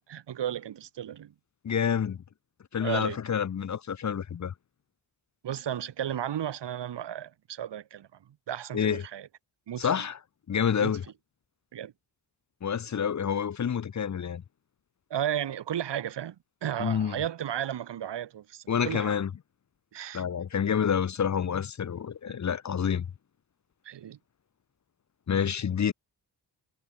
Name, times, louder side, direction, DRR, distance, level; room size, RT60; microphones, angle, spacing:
voice 1, 0.0-1.3 2.8-3.2 5.4-8.1 8.5-9.3 9.7-10.1 10.8-10.9 11.7-11.9 15.1-16.4 16.6-19.1 19.9-20.2 23.8-24.2, right 10 dB, 80° right, 2.4 m, -34 dB
voice 2, 1.6-2.2 2.7-4.5 8.7-9.0 9.8-10.2 10.5-11.0 12.6-14.4 16.8-17.2 18.7-19.3 20.1-23.1 25.3-25.9, left 7 dB, 40° left, 0.8 m, -28 dB
cardioid pair, 90°, 42 cm